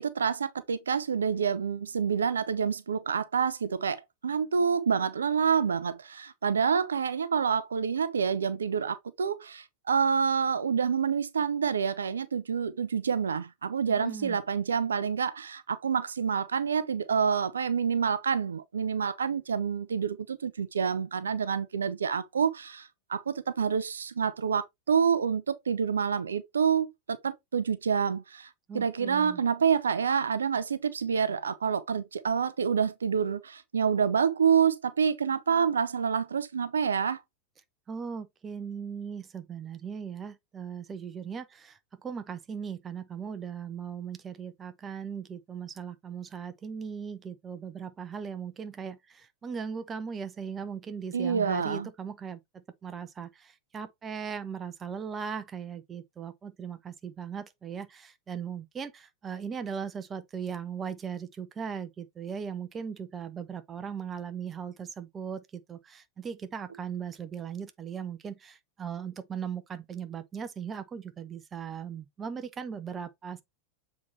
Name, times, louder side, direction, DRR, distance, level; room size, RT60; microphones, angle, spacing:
voice 1, 0.0-28.5 28.7-37.2 51.1-51.9, right 6 dB, 70° right, 0.5 m, -27 dB
voice 2, 13.9-14.4 28.7-29.4 37.9-73.4, right 7 dB, 20° right, 0.8 m, -38 dB
7.2 x 4.1 x 3.3 m
figure-of-eight pair, 90°, 0 cm